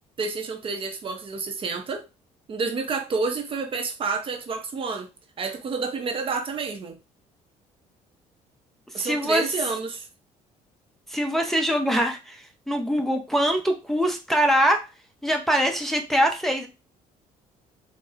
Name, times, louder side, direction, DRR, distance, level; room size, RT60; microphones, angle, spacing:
voice 1, 0.2-2.0 2.5-5.1 5.4-7.0 8.9-10.1, right 4 dB, 40° right, 0.6 m, -29 dB
voice 2, 8.9-9.5 11.1-14.9 15.2-16.7, equal, ahead, 0.6 m, -23 dB
4.0 x 2.0 x 2.4 m
cardioid pair, 100°, 14 cm